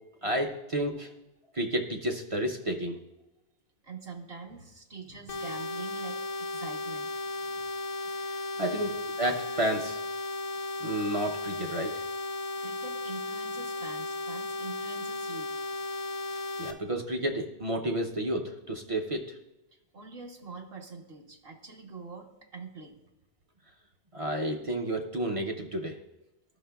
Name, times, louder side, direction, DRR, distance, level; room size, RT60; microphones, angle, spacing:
voice 1, 0.2-1.1 1.5-3.0 8.6-8.9 9.2-10.0 10.8-12.0 16.6-19.4 24.1-26.0, right 1 dB, 40° right, 3 dB, 0.5 m, -31 dB
voice 2, 3.8-7.1 7.4-7.7 8.7-8.9 12.6-15.5 19.7-23.0, right 4 dB, 60° right, 1 dB, 1.0 m, -45 dB
sound 1, 5.3-16.7, left 2 dB, 85° left, 1.0 m, -35 dB
13.0 x 5.7 x 2.3 m, 0.93 s
omnidirectional pair, 1.2 m